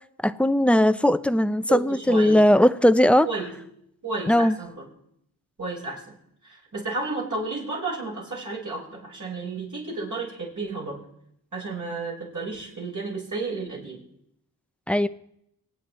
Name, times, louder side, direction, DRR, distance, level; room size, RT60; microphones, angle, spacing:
voice 1, 0.2-3.3 4.3-4.6 14.9-15.1, left 1 dB, 5° left, 13 dB, 0.8 m, -19 dB
voice 2, 1.7-2.4 3.2-3.5 4.0-4.9 5.6-6.2 6.4-11.0 11.5-14.0, right 3 dB, 50° right, -4 dB, 6.9 m, -32 dB
24.5 x 9.0 x 4.4 m, 0.74 s
cardioid pair, 55°, 38 cm